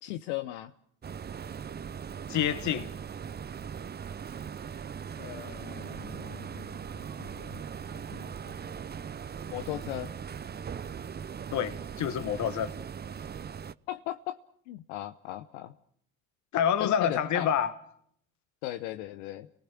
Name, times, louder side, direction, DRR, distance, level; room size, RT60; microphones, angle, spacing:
voice 1, 0.0-0.7 5.2-8.7 9.5-10.1 13.9-14.4 14.7-15.7 16.8-17.5 18.6-19.5, left 15 dB, 75° left, 1.0 m, -38 dB
sound 1, 1.0-13.7, right 7 dB, 25° right, 0.8 m, -40 dB
voice 2, 2.3-2.9 11.5-12.7 16.5-17.7, left 9 dB, 50° left, 1.6 m, -27 dB
28.5 x 19.5 x 6.0 m
hypercardioid pair, 65°, 36 cm